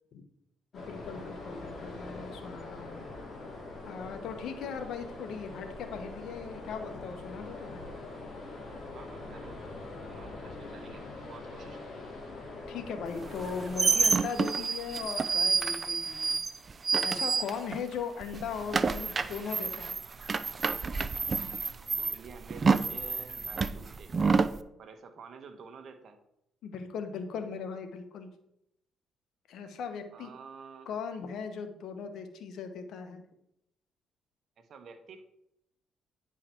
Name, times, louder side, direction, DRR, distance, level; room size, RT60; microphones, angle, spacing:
voice 1, 0.7-3.1 3.9-7.8 12.7-16.4 17.0-20.0 26.6-28.3 29.5-30.3 30.9-33.2, left 6 dB, 70° left, 8 dB, 1.1 m, -39 dB
sound 1, 0.7-14.0, left 2 dB, 40° left, 2.6 m, -43 dB
voice 2, 8.9-9.6 10.1-12.1 21.9-24.4 24.8-26.2 30.1-30.9 34.6-35.2, right 5 dB, 60° right, 7 dB, 1.2 m, -50 dB
sound 2, 13.3-17.9 18.2-24.6, right 4 dB, 35° right, 0.4 m, -29 dB
10.0 x 4.8 x 4.5 m, 0.80 s
cardioid pair, 85°, 0 cm